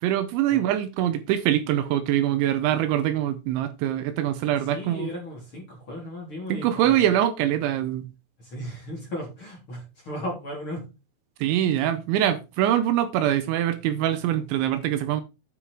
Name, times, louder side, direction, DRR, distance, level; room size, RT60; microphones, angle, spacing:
voice 1, 0.0-5.1 6.5-8.0 11.4-15.2, right 11 dB, 80° right, 3.0 m, -24 dB
voice 2, 4.7-7.0 8.4-10.8, left 1 dB, 30° left, 3.2 m, -35 dB
9.6 x 5.6 x 4.7 m
omnidirectional pair, 5.6 m